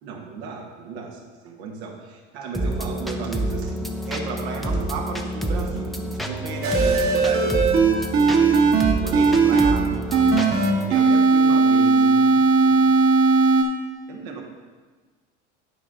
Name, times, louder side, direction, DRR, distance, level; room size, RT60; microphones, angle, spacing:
voice 1, 0.0-8.6 9.0-10.3 10.6-12.9 14.1-14.4, right 4 dB, 70° right, 1 dB, 1.5 m, -34 dB
sound 1, 2.5-10.9, right 1 dB, ahead, 0.6 m, -28 dB
sound 2, 6.6-9.7 10.1-13.6, right 4 dB, 40° right, 1.4 m, -17 dB
10.5 x 4.7 x 3.8 m, 1.4 s
hypercardioid pair, 85°, 35 cm